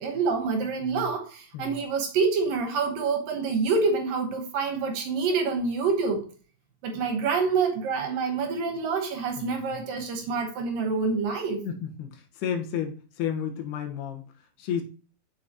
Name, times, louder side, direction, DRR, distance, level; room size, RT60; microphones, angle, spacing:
voice 1, 0.0-6.3 6.8-11.6, right 4 dB, 70° right, 2.5 m, -27 dB
voice 2, 9.4-9.8 11.6-14.8, left 8 dB, 80° left, 3.2 m, -33 dB
7.6 x 6.4 x 2.8 m
omnidirectional pair, 4.6 m